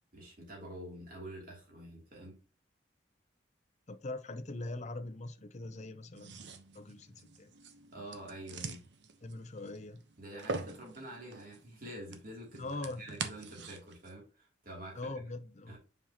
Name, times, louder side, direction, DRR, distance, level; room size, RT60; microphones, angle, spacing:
voice 1, 0.1-2.4 7.9-8.8 10.2-15.1 15.7-15.8, right 1 dB, 50° right, 3.0 m, -47 dB
voice 2, 3.9-6.4 6.7-7.5 9.2-10.0 12.6-13.0 14.9-15.8, left 2 dB, 40° left, 0.7 m, -42 dB
sound 1, 6.1-14.1, right 4 dB, 70° right, 1.0 m, -45 dB
7.2 x 5.6 x 2.9 m
head